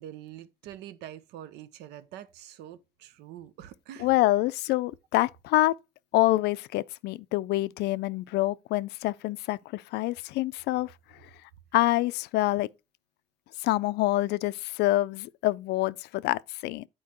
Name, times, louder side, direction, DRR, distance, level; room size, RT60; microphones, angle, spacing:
voice 1, 0.0-4.1, right 11 dB, 85° right, 0.7 m, -45 dB
voice 2, 4.0-5.7 6.1-10.9 11.7-12.7 13.6-16.9, left 17 dB, 80° left, 0.4 m, -26 dB
9.4 x 4.5 x 3.0 m
cardioid pair, 110°, 17 cm